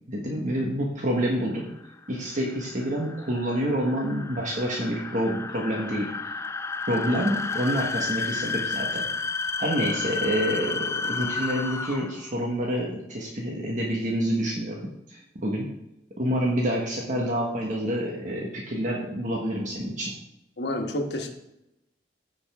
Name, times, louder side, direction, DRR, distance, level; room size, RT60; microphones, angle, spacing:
voice 1, 0.1-1.7 2.1-6.3 6.9-9.1 9.6-15.7 16.2-20.2, equal, 45° right, -2 dB, 1.4 m, -28 dB
sound 1, 1.6-12.3, left 4 dB, 15° left, 0.3 m, -32 dB
voice 2, 20.6-21.3, left 1 dB, 70° left, 3 dB, 1.4 m, -29 dB
16.0 x 5.4 x 3.6 m, 0.88 s
head